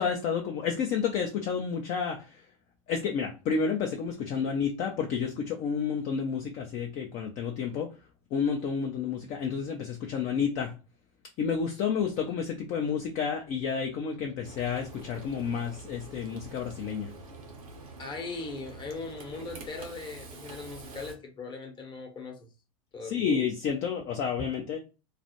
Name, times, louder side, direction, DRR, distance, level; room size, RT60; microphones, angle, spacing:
voice 1, 0.0-2.4 2.9-7.9 8.3-10.7 11.4-17.1 23.0-24.8, left 6 dB, 45° left, 0.5 m, -30 dB
Frying (food), 14.4-21.1, right 3 dB, 85° right, 0.6 m, -46 dB
voice 2, 18.0-22.5 22.9-23.2, left 3 dB, 25° left, 0.8 m, -39 dB
2.4 x 2.1 x 2.7 m
hypercardioid pair, 90°, 18 cm